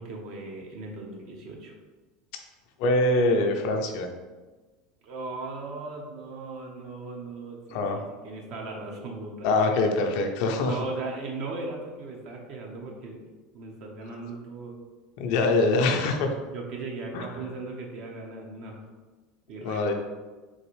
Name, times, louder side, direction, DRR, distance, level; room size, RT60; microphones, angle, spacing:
voice 1, 0.0-1.7 5.0-9.5 10.6-13.2 13.5-14.8 16.4-18.8 19.5-19.9, right 3 dB, 55° right, 0 dB, 0.8 m, -38 dB
voice 2, 2.8-4.1 7.7-8.0 9.4-10.7 15.2-16.3 17.1-17.3 19.6-19.9, left 2 dB, 65° left, 4 dB, 0.5 m, -24 dB
3.9 x 2.5 x 3.1 m, 1.3 s
hypercardioid pair, 80°, 0 cm